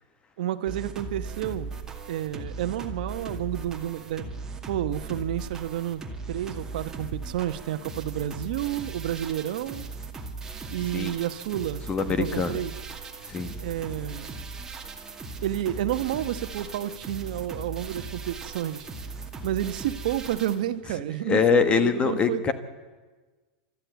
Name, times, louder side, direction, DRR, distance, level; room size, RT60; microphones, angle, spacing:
voice 1, 0.4-1.7 2.1-4.3 4.7-6.0 6.3-9.9 10.7-11.8 12.1-12.7 13.6-14.3 15.4-18.9 19.4-22.5, right 12 dB, 70° right, 1.0 m, -30 dB
sound 1, 0.7-20.6, right 3 dB, 10° right, 2.2 m, -38 dB
voice 2, 11.9-12.6 13.2-13.6 21.2-22.5, left 5 dB, 25° left, 1.4 m, -23 dB
28.5 x 13.5 x 8.2 m
supercardioid pair, 130°, 5 cm